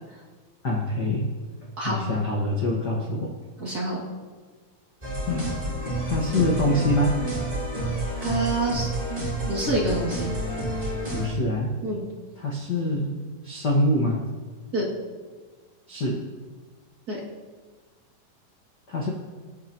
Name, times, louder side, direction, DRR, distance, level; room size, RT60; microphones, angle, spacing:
voice 1, 0.6-1.3 1.8-3.3 5.3-5.7 6.0-7.2 11.1-11.7 12.4-13.2 13.4-14.3 15.9-16.2 18.9-19.1, left 1 dB, 45° left, -2 dB, 1.4 m, -25 dB
voice 2, 1.8-2.2 3.6-4.0 8.2-8.9 9.5-10.3 11.8-12.0 14.7-14.9 17.1-17.2, right 2 dB, 30° right, -5 dB, 2.5 m, -27 dB
sound 1, 5.0-11.3, right 1 dB, 15° right, 4.1 m, -29 dB
24.5 x 9.9 x 3.0 m, 1.4 s
omnidirectional pair, 4.0 m